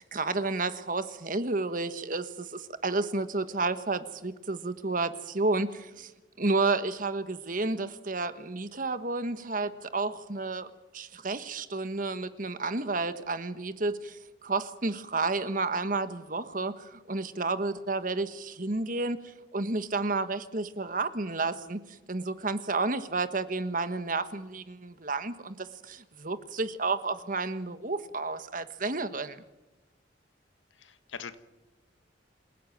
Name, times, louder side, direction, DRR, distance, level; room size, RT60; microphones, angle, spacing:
voice 1, 0.0-6.1 6.4-29.4, right 3 dB, 45° right, 12 dB, 1.3 m, -31 dB
voice 2, 30.8-31.4, left 6 dB, 80° left, 11 dB, 1.6 m, -41 dB
27.5 x 16.0 x 9.2 m, 1.0 s
head